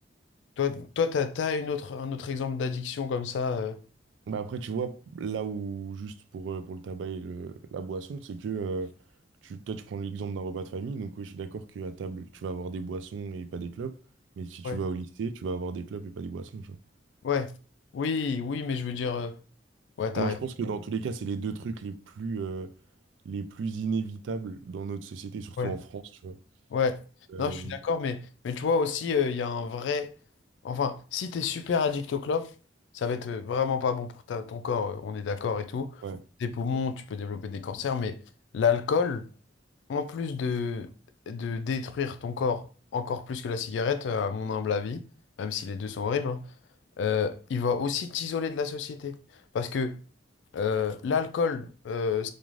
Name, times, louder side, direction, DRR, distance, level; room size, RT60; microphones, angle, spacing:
voice 1, 0.6-3.8 14.6-14.8 17.2-17.5 17.9-19.4 20.0-20.4 25.6-25.8 26.7-27.0 27.4-30.1 30.6-32.5 32.9-36.0 36.4-38.2 38.5-39.2 39.9-40.9 41.3-45.0 45.4-46.5 47.0-49.2 49.5-50.0 50.5-52.3, left 5 dB, 75° left, 0.3 m, -29 dB
voice 2, 4.3-8.9 9.4-14.0 14.4-16.8 20.1-22.7 23.2-26.4 27.3-27.8 36.0-36.2, right 5 dB, 80° right, 0.3 m, -35 dB
2.5 x 2.3 x 3.0 m
head